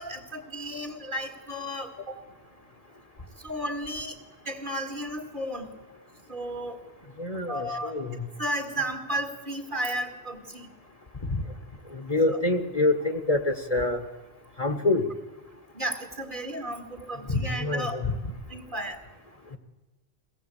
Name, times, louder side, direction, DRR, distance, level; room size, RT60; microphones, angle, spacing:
voice 1, 0.0-2.2 3.4-4.2 4.4-5.8 6.3-6.8 7.5-8.0 8.4-10.7 12.3-12.4 15.7-18.0 18.5-19.0, right 1 dB, 50° right, 5 dB, 2.4 m, -33 dB
voice 2, 7.2-8.3 11.2-11.4 11.9-14.0 14.6-15.1 17.3-18.2, left 2 dB, 35° left, 7 dB, 1.4 m, -26 dB
23.0 x 17.5 x 8.4 m, 1.2 s
omnidirectional pair, 1.1 m